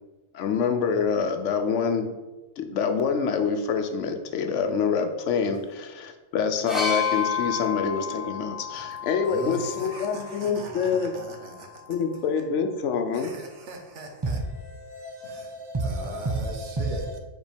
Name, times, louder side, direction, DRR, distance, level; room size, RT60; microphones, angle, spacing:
voice 1, 0.3-2.1 2.6-11.1 11.9-13.3, left 6 dB, 85° left, 1.0 m, -26 dB
sound 1, 6.7-10.5 11.5-11.7, left 7 dB, ahead, 1.2 m, -31 dB
voice 2, 9.3-11.8 13.1-14.4 15.2-17.1, right 2 dB, 85° right, 1.3 m, -40 dB
voice 3, 14.2-17.2, right 2 dB, 25° right, 0.6 m, -31 dB
5.2 x 4.1 x 5.0 m
omnidirectional pair, 1.2 m